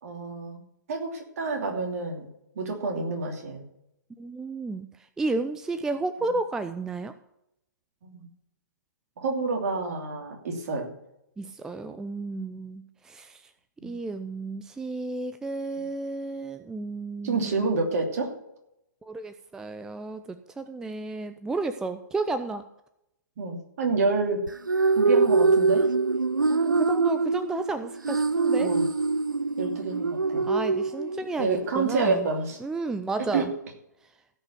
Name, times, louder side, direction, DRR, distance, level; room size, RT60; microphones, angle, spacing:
voice 1, 0.0-0.6 0.9-2.3 2.5-3.6 8.0-8.3 9.2-10.9 13.8-14.0 17.2-18.3 23.4-24.5 25.0-25.9 28.6-28.9 29.6-30.4 31.4-32.6 33.3-33.5, right 3 dB, 50° right, 3 dB, 2.8 m, -28 dB
voice 2, 4.2-7.1 11.4-13.5 13.8-17.6 19.0-22.7 26.5-28.7 30.5-32.3 32.6-33.5, right 3 dB, 5° right, 10 dB, 0.4 m, -32 dB
sound 1, 24.5-31.5, right 4 dB, 85° right, 0.4 m, -24 dB
16.0 x 5.6 x 7.0 m, 0.83 s
figure-of-eight pair, 120°, 10 cm